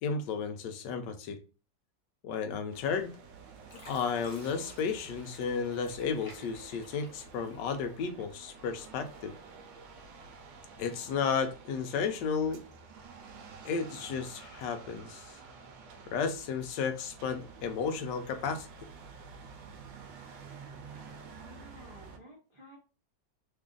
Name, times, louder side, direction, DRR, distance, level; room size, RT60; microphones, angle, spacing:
voice 1, 0.0-1.4 2.2-3.1 3.7-9.3 10.8-12.6 13.6-15.4 16.1-18.7, left 6 dB, 75° left, 8 dB, 1.2 m, -33 dB
sound 1, 2.7-22.2, right 5 dB, 90° right, 1.3 m, -50 dB
Fill (with liquid), 2.9-3.3 3.7-8.1 8.5-9.3 9.9-10.0, left 1 dB, 50° left, 1.4 m, -55 dB
voice 2, 21.4-22.8, equal, 55° right, -3 dB, 0.3 m, -53 dB
3.3 x 2.5 x 3.7 m, 0.34 s
omnidirectional pair, 1.9 m